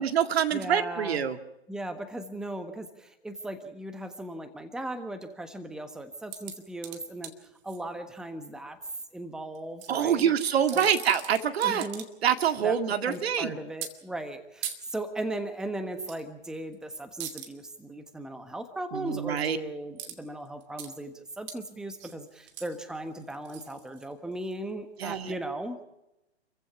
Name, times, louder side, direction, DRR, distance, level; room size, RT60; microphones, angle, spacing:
voice 1, 0.0-1.4 9.9-11.9 12.2-13.6 18.9-19.6 25.0-25.3, right 8 dB, 65° right, 9 dB, 2.0 m, -26 dB
voice 2, 0.5-1.2 1.7-7.3 7.6-8.8 9.1-10.3 10.7-10.9 11.6-12.0 12.6-12.8 13.1-25.8, right 1 dB, ahead, 8 dB, 1.3 m, -37 dB
sound 1, 6.3-7.8 9.5-9.9 10.5-12.3 12.6-13.2 13.8-13.9 14.6-14.8 16.1-16.2 16.5-16.7 17.2-17.5 20.0-20.2 20.4-20.9 21.5-21.6 22.0-24.5 25.1-25.2, right 10 dB, 40° right, 2.6 m, -41 dB
28.5 x 15.5 x 6.0 m, 0.92 s
hypercardioid pair, 135°, 33 cm